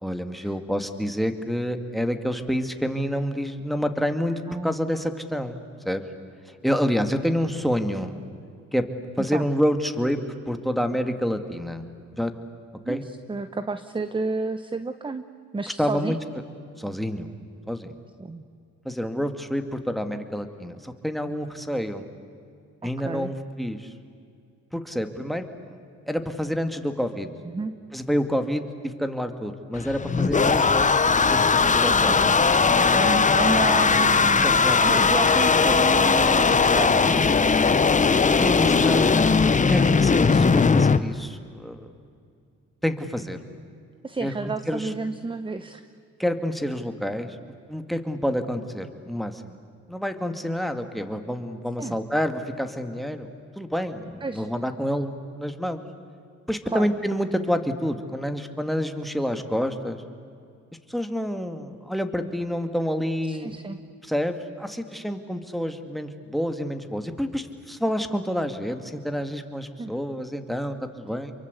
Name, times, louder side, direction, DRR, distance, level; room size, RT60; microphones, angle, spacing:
voice 1, 0.0-6.0 6.6-8.1 8.7-8.9 9.2-10.2 10.5-11.8 12.2-12.3 12.9-13.0 15.8-16.2 16.8-17.3 17.7-17.9 18.8-22.0 22.8-23.9 24.7-25.5 26.1-27.3 27.9-30.9 31.3-32.2 34.4-35.0 38.4-41.9 42.8-43.4 44.2-44.3 44.7-44.9 46.2-47.4 47.7-49.6 49.9-53.3 53.6-55.8 56.5-60.0 60.9-63.6 64.0-71.3, equal, ahead, 8 dB, 2.3 m, -28 dB
voice 2, 12.8-15.2 15.5-16.2 18.2-18.4 23.0-23.3 27.4-27.7 31.8-37.3 44.0-45.8 51.8-52.0 54.2-54.5 56.7-56.9 63.3-63.8 69.8-69.9, right 3 dB, 15° right, 10 dB, 1.0 m, -31 dB
sound 1, 29.7-41.0, left 5 dB, 25° left, 1.0 m, -19 dB
29.0 x 23.5 x 8.3 m, 2.3 s
cardioid pair, 90°, 30 cm